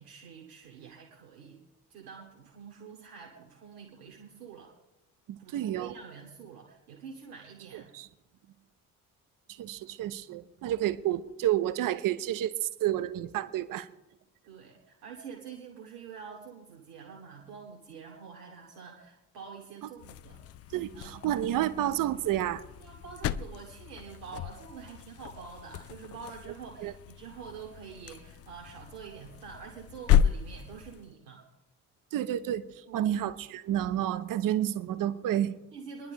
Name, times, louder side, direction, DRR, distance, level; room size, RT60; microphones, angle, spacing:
voice 1, 0.0-1.6 1.9-4.7 5.4-7.9 14.4-20.4 20.9-21.1 22.8-31.4 32.9-33.2 35.7-36.1, right 6 dB, 75° right, -1 dB, 1.7 m, -46 dB
voice 2, 5.3-5.9 7.7-8.1 9.5-13.9 20.7-22.6 26.8-26.9 32.1-35.5, right 12 dB, 45° right, 14 dB, 0.8 m, -30 dB
sound 1, 20.0-31.1, left 9 dB, 35° left, 0.5 m, -33 dB
25.0 x 11.0 x 3.5 m, 0.93 s
figure-of-eight pair, 45°, 45 cm